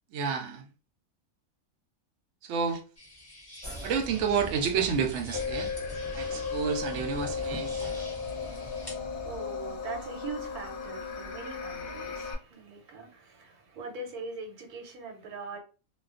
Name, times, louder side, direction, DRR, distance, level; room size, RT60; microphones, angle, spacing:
voice 1, 0.1-0.7 2.4-2.8 3.8-5.7 6.1-7.8, right 6 dB, 65° right, 0.8 m, -30 dB
sound 1, 3.0-9.0, left 1 dB, 35° left, 0.4 m, -49 dB
sound 2, 3.6-9.4, equal, 25° right, 0.8 m, -43 dB
sound 3, 5.3-12.3, left 5 dB, 65° left, 0.7 m, -35 dB
voice 2, 8.2-15.6, right 3 dB, 90° right, 1.2 m, -42 dB
2.3 x 2.3 x 2.4 m
omnidirectional pair, 1.5 m